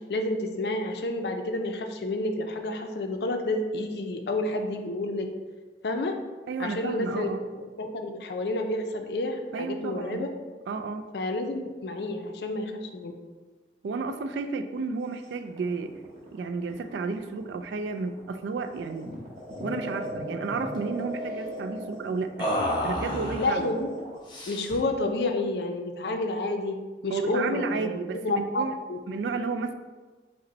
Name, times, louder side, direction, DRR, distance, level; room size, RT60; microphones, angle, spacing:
voice 1, 0.1-5.3 5.8-6.1 6.6-7.3 7.6-10.3 11.1-13.1 23.4-23.9 24.5-26.7 27.0-29.0, left 2 dB, 70° left, 5 dB, 0.4 m, -30 dB
voice 2, 6.5-7.4 9.5-10.3 10.7-11.1 13.8-16.0 16.3-19.1 19.6-22.5 22.8-23.7 27.1-28.7 29.1-29.7, right 4 dB, 85° right, 8 dB, 0.3 m, -32 dB
sound 1, 15.2-24.2, equal, 35° right, 1.0 m, -38 dB
sound 2, 19.1-19.2 19.5-19.7 20.0-20.8 22.4-23.6 24.3-24.9, equal, 25° left, 0.6 m, -31 dB
5.2 x 2.1 x 4.0 m, 1.3 s
head